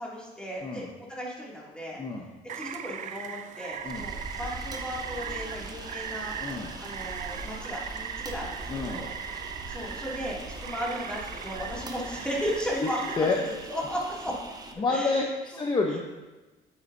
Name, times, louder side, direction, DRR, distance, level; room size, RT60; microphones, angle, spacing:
voice 1, 0.0-2.0 2.5-6.3 6.8-9.1 9.7-13.0 13.3-13.4 13.7-14.3 14.9-15.3 15.5-15.6, equal, 5° left, -5 dB, 2.5 m, -35 dB
Rain, 2.5-13.2, right 9 dB, 45° right, 0.4 m, -39 dB
sound 1, 3.7-14.7, right 3 dB, 20° right, 0.9 m, -44 dB
Fixed-wing aircraft airplane, 3.9-12.7, right 1 dB, 60° right, 2.3 m, -44 dB
voice 2, 6.4-6.7 8.7-9.0 12.8-12.9 13.2-13.4 14.8-16.0, left 3 dB, 25° left, 1 dB, 0.8 m, -28 dB
8.2 x 7.6 x 2.7 m, 1.2 s
cardioid pair, 110°, 17 cm